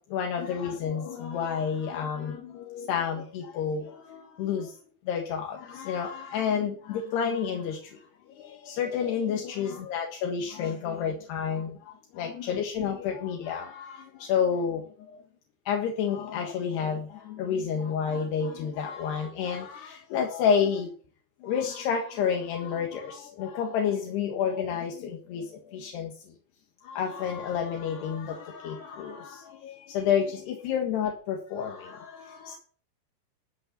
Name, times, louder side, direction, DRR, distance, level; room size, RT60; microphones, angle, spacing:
voice 1, 0.1-4.7 5.1-8.0 8.4-14.8 15.7-20.9 21.4-26.1 26.8-32.6, left 7 dB, 75° left, 2 dB, 3.7 m, -30 dB
14.0 x 6.4 x 8.2 m, 0.43 s
omnidirectional pair, 5.0 m